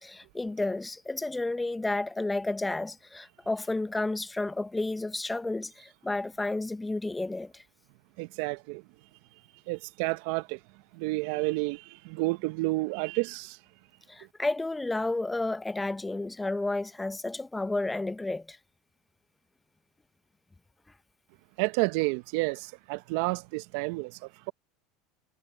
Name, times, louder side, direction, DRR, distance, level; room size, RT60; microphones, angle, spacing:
voice 1, 0.0-7.6 14.1-18.6, left 2 dB, 10° left, 0.7 m, -31 dB
voice 2, 8.2-8.9 9.7-10.6 10.9-13.6 21.6-24.5, right 25 dB, 70° right, 0.8 m, -30 dB
hypercardioid pair, 90°, 0 cm